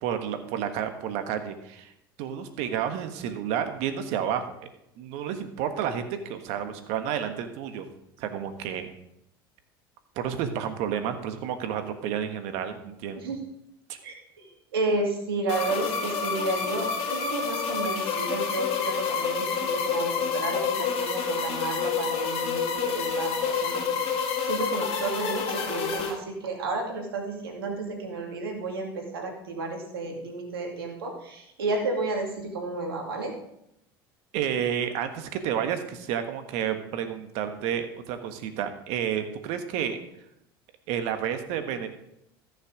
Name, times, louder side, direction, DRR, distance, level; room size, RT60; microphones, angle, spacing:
voice 1, 0.0-1.9 2.2-4.5 5.0-7.9 8.2-8.9 10.1-13.3 13.9-14.0 34.3-40.0 40.9-41.9, right 9 dB, 65° right, 8 dB, 1.5 m, -30 dB
voice 2, 14.0-33.3, right 3 dB, 90° right, 2 dB, 2.4 m, -32 dB
sound 1, 15.5-26.1, left 6 dB, 50° left, 2.3 m, -28 dB
14.5 x 6.6 x 5.0 m, 0.80 s
hypercardioid pair, 85°, 12 cm